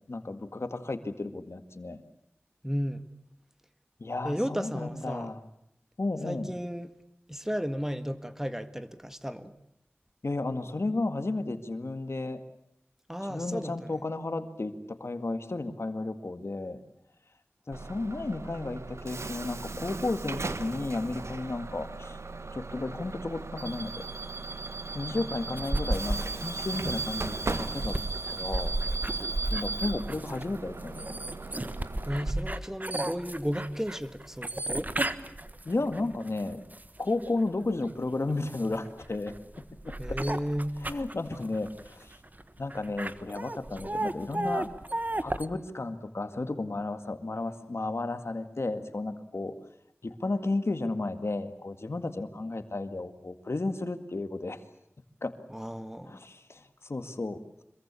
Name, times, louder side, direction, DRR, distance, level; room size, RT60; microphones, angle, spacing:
voice 1, 0.1-2.0 4.0-5.4 6.0-6.5 10.2-12.4 13.3-16.8 17.7-22.2 22.5-23.9 24.9-28.0 28.3-28.7 29.5-31.2 35.6-36.6 37.0-39.3 39.8-39.9 40.8-42.2 42.6-44.7 45.2-49.5 50.0-54.6 55.2-55.3 56.1-57.4, left 2 dB, 70° left, 2.0 m, -33 dB
voice 2, 2.6-3.2 4.2-5.3 6.3-6.9 7.3-9.5 13.1-14.0 32.1-35.0 40.0-40.9 55.5-56.2, equal, 10° right, 1.7 m, -34 dB
Bus / Alarm, 17.7-32.3, right 3 dB, 85° right, 1.4 m, -37 dB
sound 1, 25.6-37.3 37.8-45.5, right 1 dB, 40° right, 1.4 m, -34 dB
26.0 x 22.5 x 8.4 m
wide cardioid pair, 45°, 5 cm